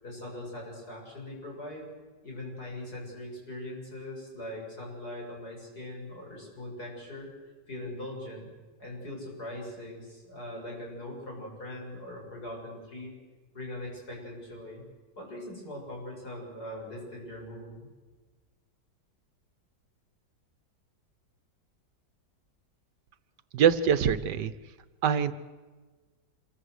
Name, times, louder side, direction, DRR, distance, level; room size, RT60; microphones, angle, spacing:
voice 1, 0.0-1.9 2.2-7.3 7.7-8.5 8.8-13.1 13.5-14.8 15.2-17.9, left 1 dB, 65° left, -1 dB, 7.8 m, -41 dB
voice 2, 23.5-24.5 25.0-25.3, right 8 dB, 75° right, 13 dB, 1.6 m, -23 dB
26.5 x 23.0 x 8.1 m, 1.3 s
omnidirectional pair, 1.8 m